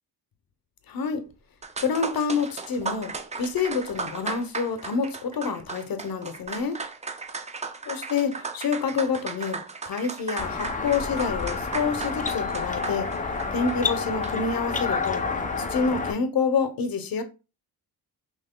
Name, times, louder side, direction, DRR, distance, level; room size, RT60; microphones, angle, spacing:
voice 1, 0.9-1.2 1.8-3.1 3.4-6.8 7.9-9.6 9.9-13.1 13.5-15.2 15.6-17.2, left 5 dB, 65° left, 0.9 m, -27 dB
sound 1, 1.3-1.4 1.6-14.6, right 4 dB, 20° right, 0.4 m, -36 dB
sound 2, 10.4-16.1, left 4 dB, 20° left, 0.7 m, -29 dB
5.6 x 3.0 x 2.2 m
cardioid pair, 100°, 39 cm